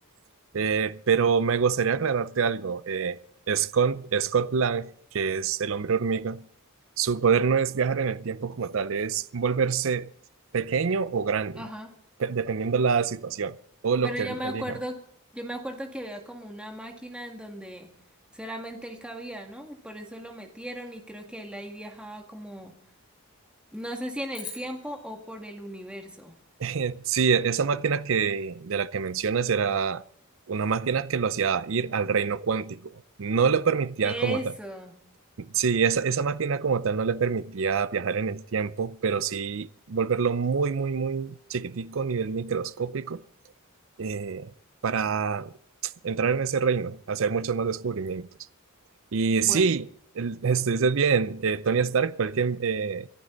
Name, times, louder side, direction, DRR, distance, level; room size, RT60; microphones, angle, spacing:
voice 1, 0.5-3.2 3.5-6.4 7.0-10.1 10.5-11.6 12.2-13.6 13.8-14.6 26.6-30.0 30.5-34.5 35.4-43.2 44.0-44.5 44.8-45.5 45.8-48.3 49.1-49.9 50.1-53.1, right 6 dB, 65° right, 0.5 m, -26 dB
voice 2, 11.6-11.9 14.0-15.0 15.3-17.9 18.3-22.8 23.7-26.4 34.0-35.0 49.4-49.7, equal, 5° right, 2.0 m, -37 dB
sound 1, 24.3-26.8, left 5 dB, 20° left, 6.3 m, -46 dB
27.5 x 11.5 x 3.9 m
head